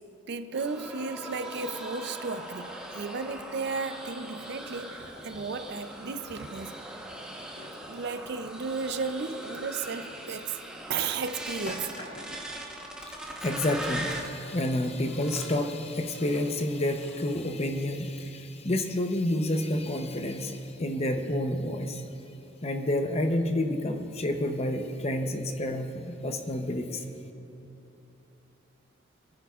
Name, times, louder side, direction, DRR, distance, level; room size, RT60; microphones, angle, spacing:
voice 1, 0.3-6.7 7.8-10.6 10.9-11.9, right 4 dB, 55° right, 0.5 m, -34 dB
sound 1, 0.5-14.4 15.1-15.7 16.1-16.5 16.8-17.5, right 1 dB, 5° right, 1.0 m, -41 dB
Drawer open or close, 5.6-6.4 7.2-7.9 9.8-10.3 11.1-12.6 14.4-14.9 15.6-15.7 16.3-16.9, left 1 dB, 75° left, 2.4 m, -47 dB
voice 2, 13.0-22.0 22.6-27.0, left 1 dB, 35° left, 0.8 m, -29 dB
25.0 x 10.0 x 2.4 m
head